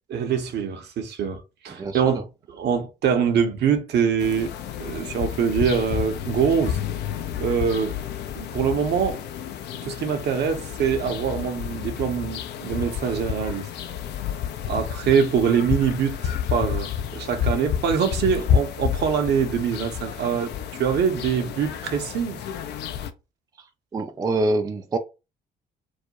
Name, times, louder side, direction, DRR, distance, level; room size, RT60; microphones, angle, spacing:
voice 1, 0.1-4.5 4.8-6.8 7.4-8.0 8.4-9.2 9.8-13.7 14.7-22.4, right 7 dB, 55° right, 0.7 m, -24 dB
voice 2, 1.8-2.2 23.9-25.0, right 2 dB, 20° right, 0.4 m, -25 dB
sound 1, 4.2-23.1, left 9 dB, 55° left, 0.4 m, -30 dB
2.4 x 2.1 x 2.7 m
figure-of-eight pair, 45°, 21 cm